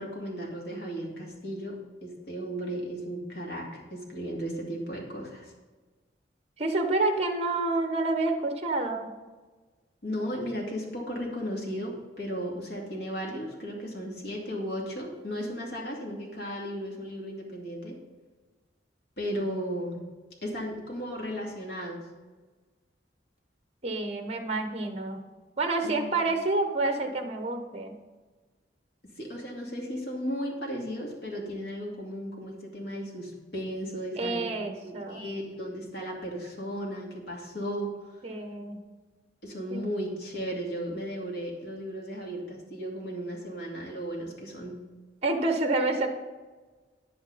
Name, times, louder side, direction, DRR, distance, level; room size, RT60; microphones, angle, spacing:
voice 1, 0.0-5.5 10.0-18.0 19.2-20.0 20.4-22.1 25.8-26.3 29.2-38.0 39.4-44.8, equal, 75° left, -2 dB, 2.4 m, -35 dB
voice 2, 6.6-9.1 23.8-25.2 25.6-27.9 34.2-35.2 38.2-38.8 39.7-39.8 45.2-46.1, right 2 dB, 35° right, 6 dB, 0.9 m, -28 dB
9.9 x 8.4 x 4.1 m, 1.3 s
head